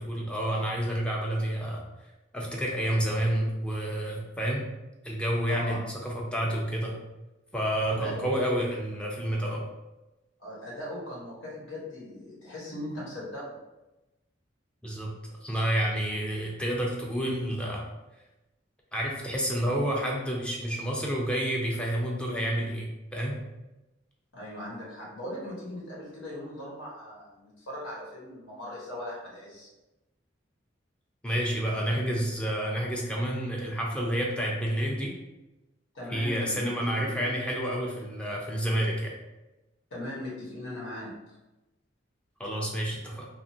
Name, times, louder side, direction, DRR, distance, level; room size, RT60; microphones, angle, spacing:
voice 1, 0.0-1.8 2.3-4.6 5.0-6.9 7.5-9.6 14.8-15.1 15.4-17.8 18.9-23.4 31.2-35.1 36.1-39.1 42.4-43.3, right 1 dB, 5° left, -2 dB, 0.4 m, -29 dB
voice 2, 5.5-5.9 7.8-8.3 10.4-13.6 24.3-29.7 35.9-37.2 39.9-41.4, left 1 dB, 80° left, -5 dB, 1.2 m, -39 dB
2.7 x 2.4 x 2.7 m, 1.0 s
head